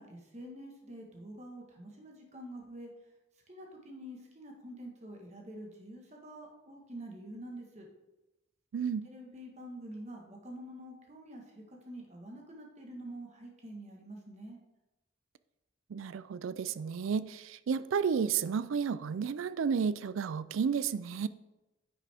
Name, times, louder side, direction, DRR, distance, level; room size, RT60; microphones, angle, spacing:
voice 1, 0.0-2.9 3.5-7.9 9.0-14.6, right 1 dB, 35° right, 1 dB, 1.4 m, -47 dB
voice 2, 8.7-9.1 15.9-21.3, right 6 dB, 90° right, 16 dB, 0.4 m, -32 dB
10.0 x 6.1 x 3.5 m, 1.0 s
head